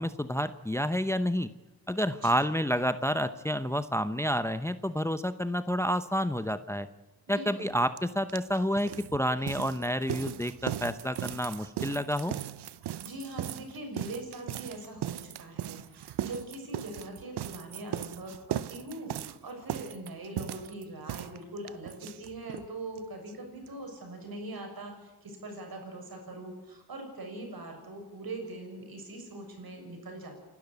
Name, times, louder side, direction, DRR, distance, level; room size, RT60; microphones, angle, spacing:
voice 1, 0.0-1.5 1.9-6.9 7.3-12.3, equal, 5° left, 12 dB, 0.8 m, -29 dB
voice 2, 7.3-7.7 13.0-30.4, right 2 dB, 65° right, 4 dB, 6.4 m, -42 dB
sound 1, 8.0-8.1 8.3-22.7 23.0-23.1 23.3-23.4 23.7-23.8, right 12 dB, 85° right, 0.7 m, -38 dB
29.0 x 12.0 x 8.3 m, 1.2 s
cardioid pair, 70°, 39 cm